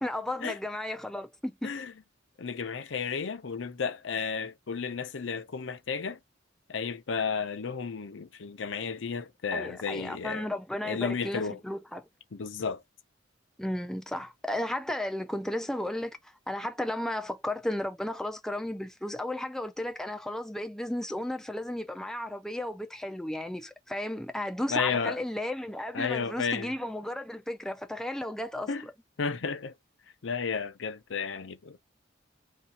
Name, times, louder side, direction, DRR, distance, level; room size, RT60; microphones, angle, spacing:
voice 1, 0.0-1.7 9.5-12.1 13.6-28.9, left 1 dB, 5° left, 0.4 m, -34 dB
voice 2, 2.4-6.2 6.7-10.5 10.8-11.6 12.3-12.8 24.7-25.2 25.9-26.7 28.7-28.8 29.2-29.7 30.2-31.8, left 5 dB, 70° left, 0.6 m, -32 dB
2.7 x 2.4 x 4.1 m
head